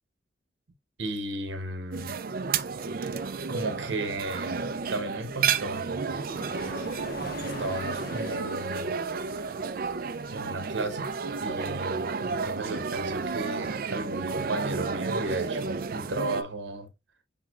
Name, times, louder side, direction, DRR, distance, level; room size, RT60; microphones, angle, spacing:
voice 1, 1.0-2.2 3.3-6.2 7.4-8.9 10.3-16.9, right 2 dB, 80° right, 1.0 m, -34 dB
sound 1, 1.9-16.4, right 5 dB, 50° right, 0.5 m, -32 dB
sound 2, 5.5-12.7, left 2 dB, 55° left, 0.8 m, -46 dB
6.3 x 3.6 x 2.3 m
head